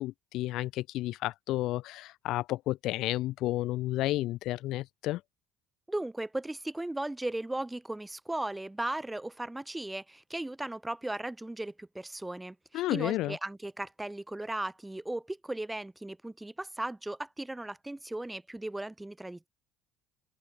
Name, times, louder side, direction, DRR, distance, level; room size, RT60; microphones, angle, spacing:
voice 1, 0.0-5.2 12.7-13.4, left 16 dB, 70° left, 0.4 m, -31 dB
voice 2, 5.9-19.5, right 1 dB, 10° right, 1.8 m, -37 dB
open air
cardioid pair, 110°, 0 cm